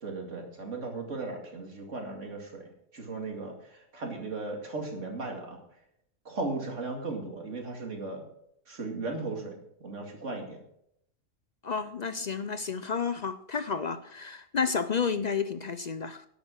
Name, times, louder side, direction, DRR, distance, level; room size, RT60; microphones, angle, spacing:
voice 1, 0.0-5.6 6.2-8.2 8.7-10.6, right 3 dB, 70° right, 2.7 m, -37 dB
voice 2, 11.6-16.3, left 5 dB, 55° left, 0.5 m, -31 dB
11.0 x 8.2 x 6.3 m
omnidirectional pair, 1.3 m